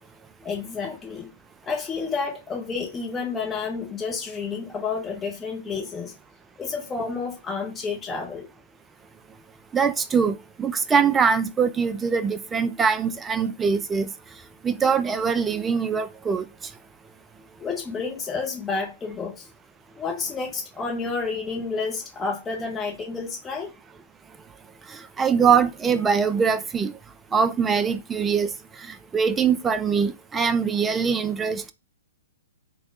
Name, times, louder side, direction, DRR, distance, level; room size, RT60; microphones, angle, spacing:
voice 1, 0.4-1.3 1.7-6.1 6.6-8.5 17.6-19.5 20.0-23.7, left 4 dB, 15° left, 0.9 m, -30 dB
voice 2, 9.7-14.1 14.6-16.4 24.9-26.9 27.3-28.5 28.8-31.7, right 6 dB, 15° right, 0.3 m, -23 dB
3.3 x 2.4 x 3.9 m
figure-of-eight pair, 115°, 0 cm